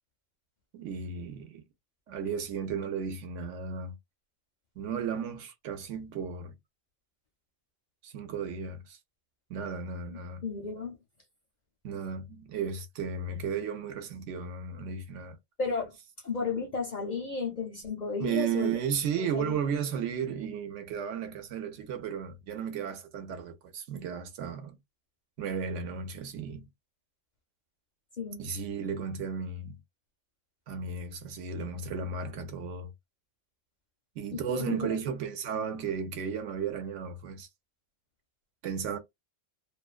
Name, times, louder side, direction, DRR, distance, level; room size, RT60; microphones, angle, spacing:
voice 1, 0.7-1.6 2.1-4.0 4.8-6.6 8.0-9.0 9.5-10.4 11.8-15.4 18.2-24.8 25.4-26.7 28.4-29.8 30.7-32.9 34.2-37.5 38.6-39.0, right 6 dB, 75° right, 0.9 m, -34 dB
voice 2, 10.4-11.0 15.6-15.9 16.2-18.7 19.2-19.6 28.2-28.5 34.3-35.0, left 4 dB, 50° left, 0.6 m, -33 dB
2.4 x 2.1 x 2.3 m
omnidirectional pair, 1.3 m